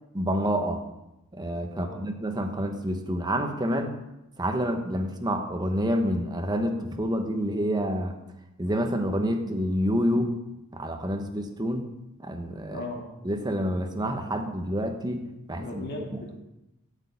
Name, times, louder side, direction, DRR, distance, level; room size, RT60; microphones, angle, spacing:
voice 1, 0.1-0.8 1.3-4.0 4.4-8.2 8.6-10.3 10.7-11.9 12.2-12.8 13.2-15.8, equal, 20° right, 5 dB, 1.0 m, -28 dB
voice 2, 1.7-2.1 12.7-13.0 15.6-16.4, left 2 dB, 45° left, -1 dB, 2.2 m, -38 dB
8.3 x 6.4 x 8.3 m, 0.93 s
head